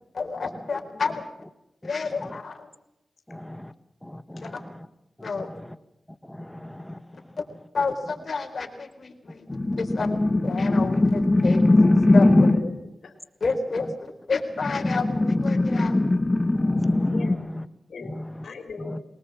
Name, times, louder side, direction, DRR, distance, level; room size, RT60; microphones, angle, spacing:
voice 1, 0.1-1.2 1.8-2.7 4.4-4.5 5.2-5.5 7.7-9.5 9.8-11.7 12.1-12.5 13.4-16.0, left 4 dB, 60° left, 3 dB, 4.0 m, -30 dB
voice 2, 3.3-3.7 4.0-4.8 5.2-5.7 6.2-7.0 11.8-12.0 16.6-17.6 18.1-18.2 18.8-19.0, left 1 dB, 10° left, 12 dB, 1.6 m, -37 dB
sound 1, 9.5-12.8 14.6-17.3, left 2 dB, 25° left, 2.1 m, -20 dB
voice 3, 12.5-13.2 17.1-17.4 17.9-19.0, left 4 dB, 80° left, 6 dB, 3.8 m, -40 dB
22.0 x 19.5 x 7.4 m, 0.87 s
cardioid pair, 60°, 0 cm